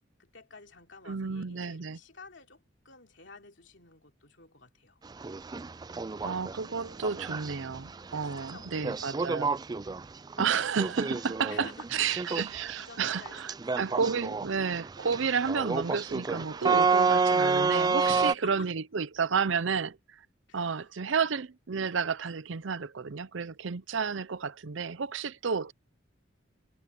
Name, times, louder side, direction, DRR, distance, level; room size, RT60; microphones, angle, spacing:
voice 1, 0.2-5.0 8.0-9.0 11.5-14.1 17.8-18.5 20.5-20.8, left 4 dB, 65° left, 3.3 m, -51 dB
voice 2, 1.1-2.0 6.2-9.5 10.4-13.4 13.8-20.2 20.5-25.7, right 6 dB, 70° right, 0.6 m, -31 dB
sound 1, 5.1-18.3, right 4 dB, 20° right, 0.3 m, -30 dB
head